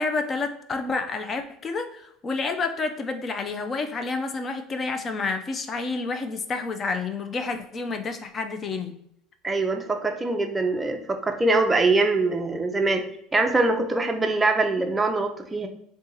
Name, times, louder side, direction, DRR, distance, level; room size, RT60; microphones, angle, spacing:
voice 1, 0.0-9.0, left 3 dB, 30° left, 7 dB, 0.5 m, -29 dB
voice 2, 9.4-13.0 13.3-15.7, right 3 dB, 15° right, 4 dB, 0.6 m, -23 dB
3.6 x 2.8 x 3.8 m, 0.72 s
supercardioid pair, 125°, 0 cm